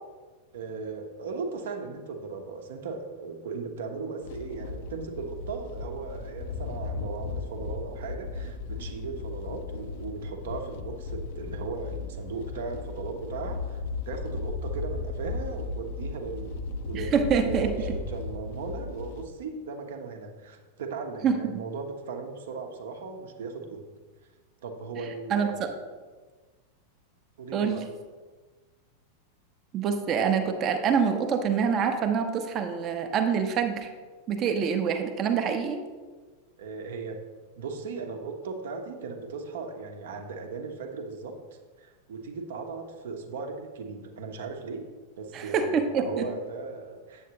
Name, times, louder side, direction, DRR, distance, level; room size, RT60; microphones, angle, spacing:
voice 1, 0.5-23.9 24.6-25.8 27.4-27.8 36.6-37.2 37.6-41.4 41.8-44.9 45.1-47.3, right 4 dB, 60° right, 4 dB, 0.9 m, -37 dB
sound 1, 4.2-19.2, left 4 dB, 50° left, 0.5 m, -36 dB
voice 2, 16.9-17.9 21.2-21.4 25.3-25.7 27.5-27.9 29.7-33.9 34.3-35.8 45.3-46.3, right 6 dB, 30° right, 6 dB, 0.8 m, -26 dB
8.3 x 7.4 x 2.9 m, 1.4 s
figure-of-eight pair, 90°, 0 cm